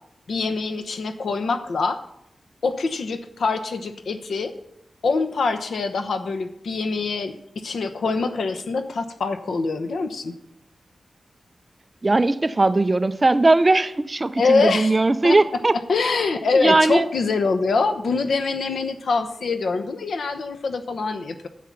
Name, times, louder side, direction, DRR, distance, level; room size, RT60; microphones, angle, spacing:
voice 1, 0.3-2.0 2.6-4.5 5.0-10.3 14.4-15.4 15.9-21.5, left 4 dB, 90° left, 9 dB, 0.9 m, -24 dB
voice 2, 12.0-15.8 16.5-17.1, right 2 dB, 25° right, 13 dB, 0.4 m, -19 dB
10.0 x 7.7 x 5.8 m, 0.77 s
wide cardioid pair, 130°, 0 cm